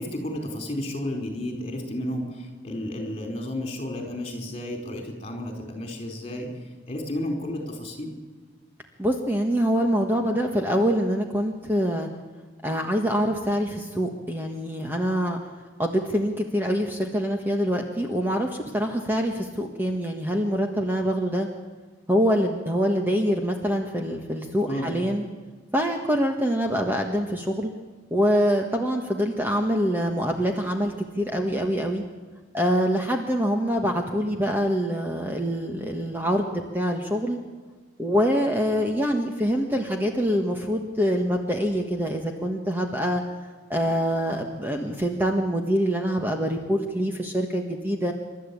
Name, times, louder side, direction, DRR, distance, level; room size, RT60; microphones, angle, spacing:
voice 1, 0.0-6.5 6.9-8.1 24.7-25.0, left 1 dB, 30° left, 2 dB, 4.6 m, -32 dB
voice 2, 9.0-12.1 12.6-15.4 15.8-21.5 22.1-25.2 25.7-27.7 28.1-32.0 32.5-37.4 38.0-43.2 43.7-48.1, equal, 10° right, 2 dB, 1.5 m, -25 dB
28.0 x 13.0 x 8.6 m, 1.4 s
head